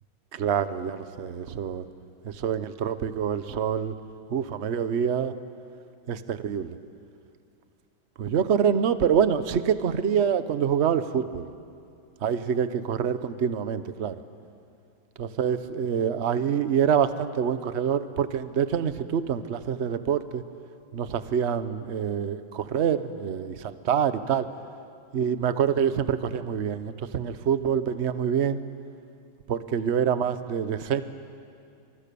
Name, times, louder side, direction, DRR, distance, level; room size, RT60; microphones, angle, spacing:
voice 1, 0.3-1.8 2.2-3.9 4.3-5.3 6.1-6.8 8.2-11.5 12.2-14.2 15.2-20.4 20.9-24.5 25.1-28.6 29.5-31.0, right 8 dB, 50° right, 12 dB, 0.9 m, -26 dB
29.5 x 26.0 x 6.9 m, 2.4 s
omnidirectional pair, 2.2 m